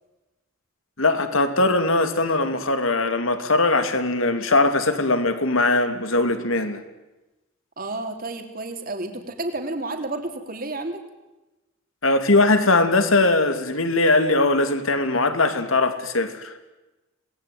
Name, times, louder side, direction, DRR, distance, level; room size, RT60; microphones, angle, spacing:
voice 1, 1.0-6.8 12.0-16.5, left 2 dB, 75° left, 2.7 m, -20 dB
voice 2, 7.8-11.0, right 2 dB, 45° right, 3.2 m, -31 dB
27.0 x 19.0 x 9.5 m
head